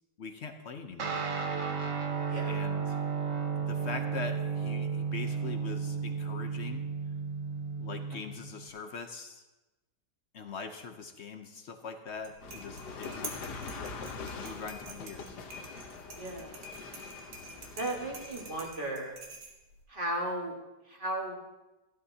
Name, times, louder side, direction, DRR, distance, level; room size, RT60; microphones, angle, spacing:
voice 1, 0.2-1.2 2.4-2.8 3.6-6.8 7.8-9.4 10.3-13.1 14.2-15.4, left 5 dB, 55° left, 6 dB, 0.8 m, -42 dB
Guitar, 1.0-8.7, right 6 dB, 50° right, 1.4 m, -33 dB
sound 1, 12.1-19.8, right 2 dB, 75° right, 2.1 m, -47 dB
sound 2, 12.4-18.7, left 4 dB, 70° left, 1.5 m, -43 dB
voice 2, 16.1-16.6 17.8-19.2 19.9-20.5 20.9-21.4, right 1 dB, 30° right, -1 dB, 1.8 m, -35 dB
15.0 x 12.0 x 2.8 m, 1.1 s
omnidirectional pair, 1.9 m